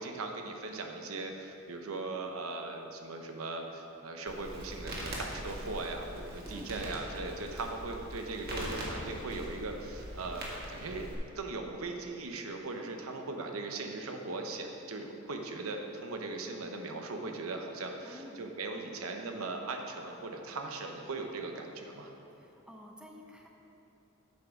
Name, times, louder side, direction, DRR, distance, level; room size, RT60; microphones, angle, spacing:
voice 1, 0.0-11.1 11.3-22.1, right 3 dB, 85° right, 3 dB, 0.9 m, -39 dB
Crackle, 4.3-11.1, right 1 dB, 50° right, 1.8 m, -42 dB
voice 2, 6.4-6.8 18.0-18.4 22.3-23.5, equal, 5° right, 0 dB, 0.7 m, -51 dB
8.4 x 6.2 x 5.9 m, 2.9 s
head